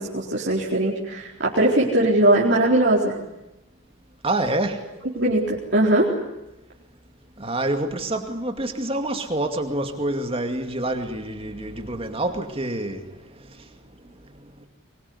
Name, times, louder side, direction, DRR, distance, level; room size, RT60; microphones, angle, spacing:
voice 1, 0.0-3.2 5.2-6.1, right 1 dB, 55° right, 4.1 m, -20 dB
voice 2, 4.2-4.9 7.4-14.7, right 1 dB, 25° right, 2.3 m, -28 dB
24.5 x 22.0 x 9.7 m
head